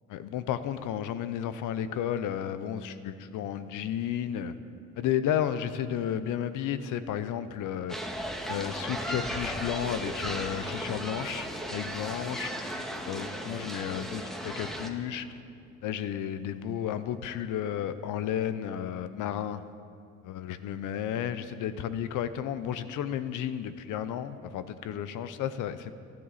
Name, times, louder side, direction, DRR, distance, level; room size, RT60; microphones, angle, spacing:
voice 1, 0.1-4.5 5.0-8.0 8.5-12.7 13.0-15.3 15.8-19.6 20.2-25.9, left 9 dB, 90° left, 12 dB, 0.8 m, -32 dB
sound 1, 7.9-14.9, equal, ahead, 1.7 m, -36 dB
28.5 x 10.5 x 4.2 m, 2.5 s
cardioid pair, 90°, 30 cm